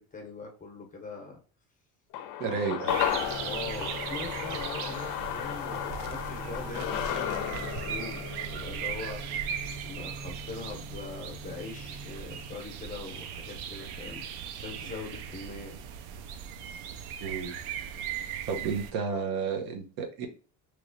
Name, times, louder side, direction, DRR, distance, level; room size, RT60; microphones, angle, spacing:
voice 1, 0.0-1.4 2.5-2.6 3.4-8.3 8.5-9.2 9.8-14.2 14.5-15.8, left 4 dB, 20° left, 2 dB, 0.9 m, -42 dB
sound 1, 2.1-10.6 10.9-11.0, left 10 dB, 60° left, 0.5 m, -34 dB
voice 2, 2.4-3.0 17.2-17.6 17.9-18.0 18.5-20.3, right 5 dB, 70° right, 3 dB, 0.9 m, -32 dB
sound 2, 2.9-18.9, right 8 dB, 90° right, 0.5 m, -38 dB
sound 3, 3.2-12.6, right 1 dB, 40° right, 0.7 m, -46 dB
3.1 x 3.1 x 2.6 m, 0.38 s
cardioid pair, 135°, 38 cm